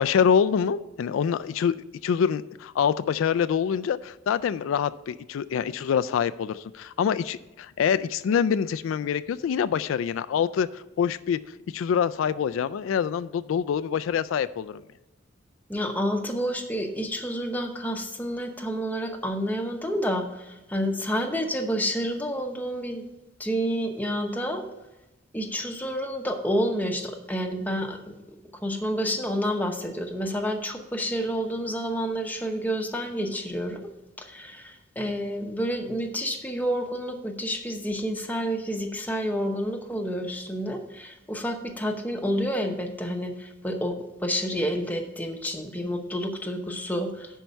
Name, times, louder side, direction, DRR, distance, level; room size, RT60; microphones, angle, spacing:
voice 1, 0.0-1.8 2.0-11.4 11.7-14.8, left 7 dB, 80° left, 13 dB, 0.3 m, -25 dB
voice 2, 15.7-23.0 23.4-24.6 25.3-28.1 28.6-33.8 34.2-44.0 44.2-47.3, equal, 10° left, 3 dB, 0.8 m, -29 dB
10.5 x 4.6 x 5.3 m, 1.0 s
head